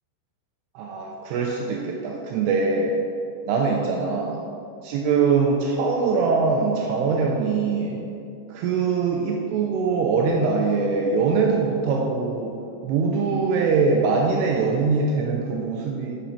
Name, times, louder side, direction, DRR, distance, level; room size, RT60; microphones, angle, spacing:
voice 1, 0.8-2.9 3.4-4.4 4.8-8.0 8.5-12.5 12.8-16.2, right 4 dB, 85° right, 0 dB, 2.3 m, -22 dB
6.9 x 5.0 x 5.8 m, 2.6 s
omnidirectional pair, 5.2 m